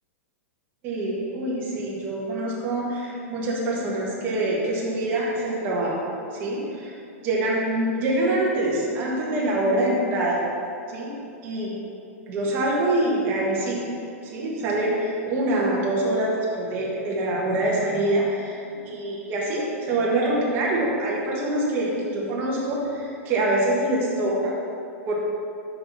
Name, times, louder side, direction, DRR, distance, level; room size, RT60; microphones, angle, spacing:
voice 1, 0.8-5.9 6.4-7.0 7.2-10.4 10.9-11.1 11.4-11.7 12.3-14.0 14.3-24.5 25.0-25.1, right 1 dB, 25° right, -4 dB, 1.4 m, -25 dB
6.6 x 5.6 x 4.5 m, 2.7 s
supercardioid pair, 165°, 8 cm